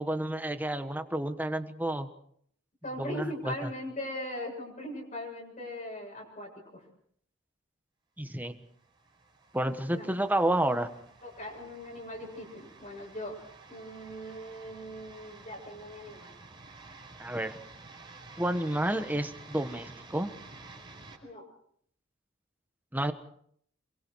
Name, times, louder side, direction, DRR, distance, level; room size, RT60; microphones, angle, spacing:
voice 1, 0.0-2.1 3.0-3.7 8.2-8.6 9.5-10.9 17.2-17.6 18.4-20.3 22.9-23.1, right 1 dB, 10° right, 8 dB, 1.3 m, -30 dB
voice 2, 2.8-6.8 9.9-10.1 11.2-13.3 13.7-16.3 21.2-21.4, left 1 dB, 40° left, -1 dB, 7.2 m, -40 dB
sound 1, 8.6-21.2, right 3 dB, 25° right, 4.7 m, -51 dB
27.5 x 23.0 x 4.8 m, 0.65 s
head